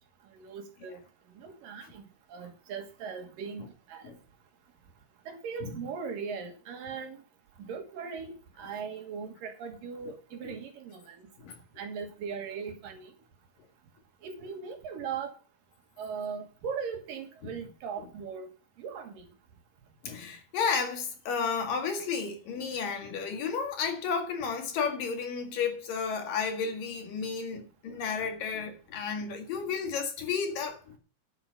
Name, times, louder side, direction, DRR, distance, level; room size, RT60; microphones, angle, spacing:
voice 1, 0.3-1.0 1.4-4.1 5.3-7.2 7.6-11.3 11.8-13.1 14.2-15.3 16.0-18.5 18.8-19.3, right 6 dB, 70° right, 3.2 m, -39 dB
voice 2, 20.0-31.0, left 6 dB, 70° left, 3.5 m, -32 dB
10.0 x 8.5 x 5.3 m
omnidirectional pair, 4.1 m